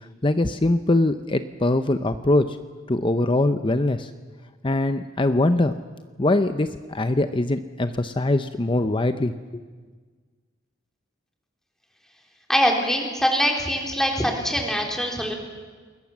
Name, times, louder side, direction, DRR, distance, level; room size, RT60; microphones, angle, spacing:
voice 1, 0.2-2.6 2.9-4.1 4.6-5.8 6.2-9.6, left 2 dB, 25° left, 9 dB, 0.7 m, -22 dB
voice 2, 12.5-15.4, equal, 5° left, 1 dB, 3.7 m, -23 dB
28.0 x 21.0 x 7.3 m, 1.5 s
head